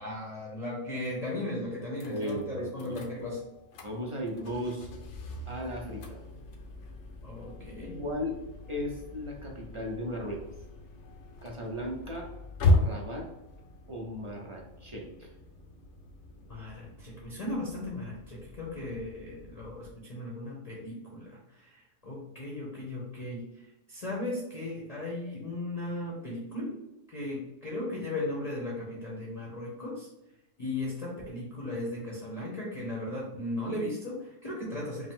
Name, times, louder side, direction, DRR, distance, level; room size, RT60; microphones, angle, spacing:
voice 1, 0.0-3.4 7.2-8.0 16.5-26.8 27.1-30.1 30.6-35.1, left 1 dB, 35° left, -4 dB, 0.8 m, -37 dB
sound 1, 2.0-19.9, left 2 dB, 70° left, 0.9 m, -36 dB
voice 2, 2.1-3.0 3.8-4.9 5.5-6.2 7.9-8.4 8.7-10.4 11.4-12.3 12.7-13.3 13.9-15.3, equal, 35° right, -1 dB, 0.5 m, -36 dB
5.1 x 2.0 x 3.6 m, 0.93 s
omnidirectional pair, 1.3 m